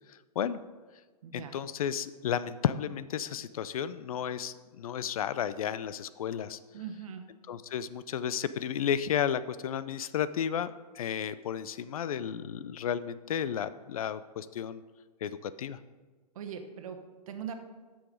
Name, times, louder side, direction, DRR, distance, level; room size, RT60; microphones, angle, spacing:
voice 1, 0.1-0.6 1.3-6.6 7.5-14.8 15.2-15.8, left 9 dB, 60° left, 15 dB, 0.5 m, -33 dB
voice 2, 1.2-1.5 6.7-7.3 16.3-17.0 17.3-17.5, right 8 dB, 55° right, 6 dB, 1.1 m, -40 dB
8.2 x 6.2 x 5.1 m, 1.3 s
hypercardioid pair, 120°, 21 cm